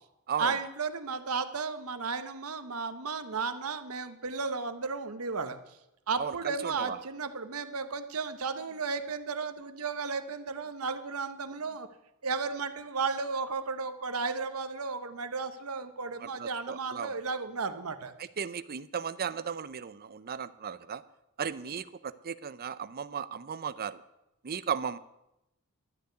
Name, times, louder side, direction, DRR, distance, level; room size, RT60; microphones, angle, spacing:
voice 1, 0.4-5.6 6.1-11.9 12.2-18.1, right 4 dB, 75° right, 10 dB, 1.0 m, -34 dB
voice 2, 6.2-7.0 16.2-17.2 18.2-21.0 21.4-24.0 24.4-25.0, right 7 dB, 45° right, 15 dB, 0.5 m, -36 dB
12.0 x 6.7 x 9.5 m, 0.89 s
head